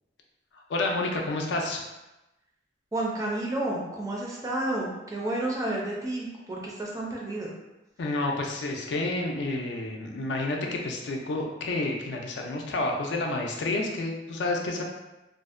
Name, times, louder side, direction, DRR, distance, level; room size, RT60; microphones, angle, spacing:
voice 1, 0.7-1.8 8.0-14.8, left 2 dB, 65° left, 1 dB, 0.4 m, -29 dB
voice 2, 2.9-7.5, right 1 dB, 20° right, -3 dB, 0.4 m, -31 dB
2.5 x 2.1 x 2.4 m, 0.99 s
head